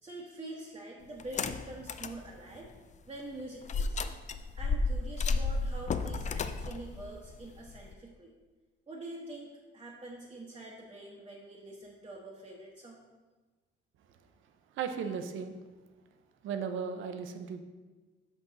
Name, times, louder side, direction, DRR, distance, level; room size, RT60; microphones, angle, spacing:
voice 1, 0.0-2.7 3.1-4.0 4.5-8.3 8.9-13.0, right 1 dB, 25° right, -4 dB, 1.1 m, -45 dB
sound 1, 1.2-2.2 2.6-2.7 3.7-7.9, left 4 dB, 35° left, 0.4 m, -32 dB
voice 2, 14.8-15.5 16.4-17.6, right 6 dB, 80° right, 7 dB, 0.7 m, -35 dB
6.0 x 5.3 x 4.0 m, 1.3 s
cardioid pair, 90°, 20 cm